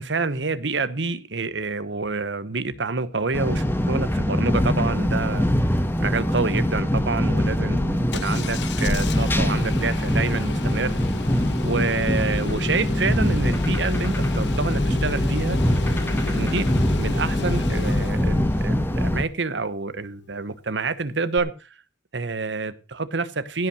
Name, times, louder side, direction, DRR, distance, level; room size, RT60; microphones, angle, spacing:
voice 1, 0.0-11.0 11.6-15.6 16.2-16.7 17.0-21.7 22.1-23.7, right 3 dB, 80° right, 14 dB, 1.1 m, -27 dB
sound 1, 3.3-19.2, equal, 10° left, 1.5 m, -23 dB
Engine starting, 8.1-18.7 21.4-21.5, left 3 dB, 65° left, 0.9 m, -31 dB
16.0 x 5.7 x 6.4 m, 0.32 s
head